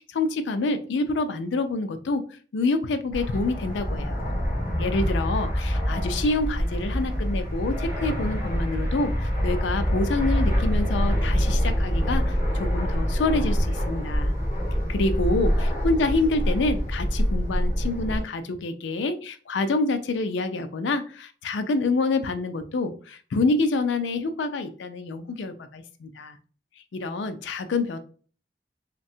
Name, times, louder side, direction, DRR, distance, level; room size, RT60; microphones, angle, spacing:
voice 1, 0.1-2.2 2.5-4.2 4.8-14.3 14.9-26.4 26.9-28.0, left 3 dB, 75° left, 9 dB, 0.4 m, -27 dB
Fixed-wing aircraft airplane, 3.1-18.2, equal, 15° right, 1.5 m, -25 dB
3.3 x 2.2 x 2.7 m, 0.41 s
head